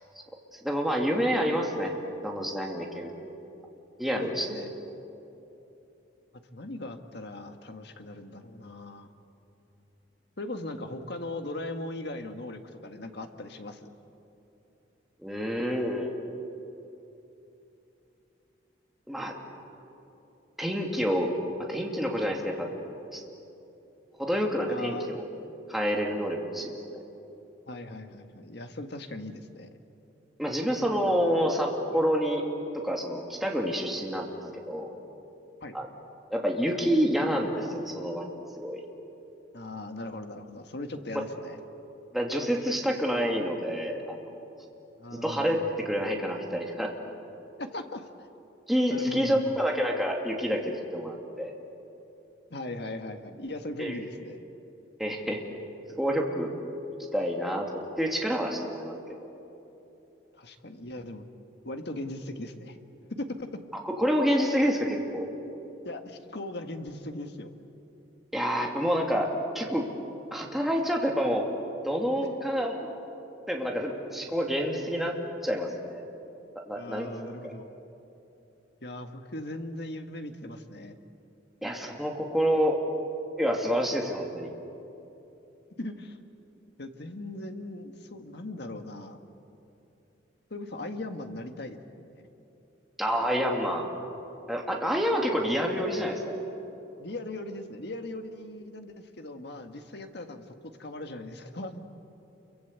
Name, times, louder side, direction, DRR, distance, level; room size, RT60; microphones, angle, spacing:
voice 1, 0.5-2.0 2.2-3.1 4.0-4.6 15.2-16.2 19.1-19.3 20.6-21.3 21.6-22.7 23.1-23.2 24.2-25.2 25.7-26.8 30.4-32.4 32.8-34.3 34.7-35.0 35.7-35.9 36.3-38.8 42.1-44.3 45.1-46.9 48.7-51.6 53.8-54.0 55.0-55.4 56.0-56.5 57.1-57.7 58.0-59.0 63.8-65.3 68.3-69.9 70.3-71.5 71.8-73.0 73.5-75.2 75.4-76.0 76.7-77.1 77.4-77.5 81.6-82.8 83.4-84.5 93.0-93.9 94.5-96.4, equal, ahead, 0 dB, 2.6 m, -28 dB
voice 2, 4.1-4.7 6.5-9.1 10.4-13.9 24.7-25.3 27.7-29.7 31.1-31.2 35.6-35.8 39.5-41.6 45.0-45.7 47.6-48.3 48.9-49.6 52.5-54.5 60.3-61.3 61.6-62.8 63.1-63.6 65.9-67.5 74.1-74.2 76.8-77.7 78.8-81.0 85.8-86.2 86.8-89.2 90.5-92.3 95.2-95.4 97.0-101.8, left 2 dB, 60° left, 6 dB, 1.7 m, -39 dB
28.5 x 23.5 x 8.2 m, 2.9 s
head